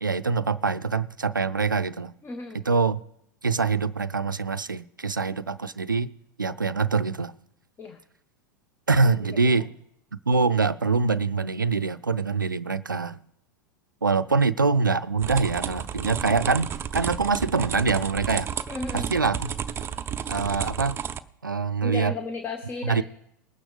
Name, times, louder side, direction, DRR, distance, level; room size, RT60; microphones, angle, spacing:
voice 1, 0.0-2.1 2.7-3.0 3.4-6.1 6.4-7.3 8.9-9.7 10.3-13.2 14.0-18.5 18.9-19.5 20.3-21.0 21.4-22.1 22.8-23.0, right 4 dB, 90° right, 0.5 m, -24 dB
voice 2, 2.2-2.6 7.8-8.0 18.7-19.1 21.8-23.0, left 3 dB, 25° left, 1.1 m, -34 dB
sound 1, 15.2-21.2, right 8 dB, 25° right, 0.5 m, -32 dB
21.0 x 8.9 x 3.4 m
figure-of-eight pair, 90°, 10 cm